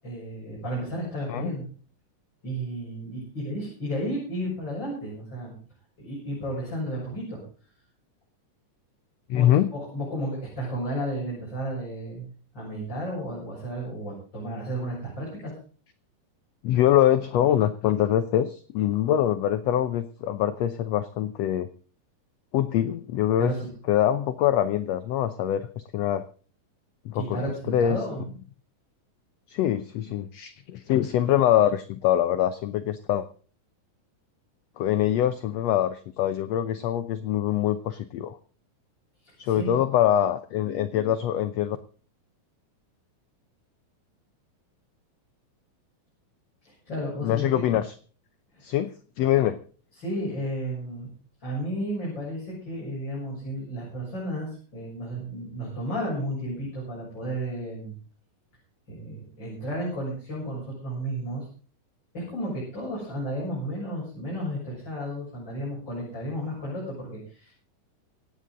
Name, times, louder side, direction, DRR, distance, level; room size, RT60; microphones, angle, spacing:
voice 1, 0.0-1.7 2.4-5.5 6.0-7.4 9.3-12.3 12.5-15.5 23.4-23.7 27.1-28.2 39.2-39.8 46.6-47.6 48.5-48.6 50.0-51.1 51.4-58.0 58.9-61.5 62.1-67.5, equal, 30° left, -5 dB, 7.7 m, -33 dB
voice 2, 9.3-9.7 16.6-21.7 22.5-23.5 23.9-26.2 27.0-27.4 27.7-28.0 29.5-33.3 34.8-38.4 39.4-41.8 47.2-47.9 48.6-48.9 49.2-49.6, left 11 dB, 75° left, 11 dB, 1.5 m, -24 dB
26.0 x 9.0 x 3.9 m, 0.40 s
omnidirectional pair, 3.8 m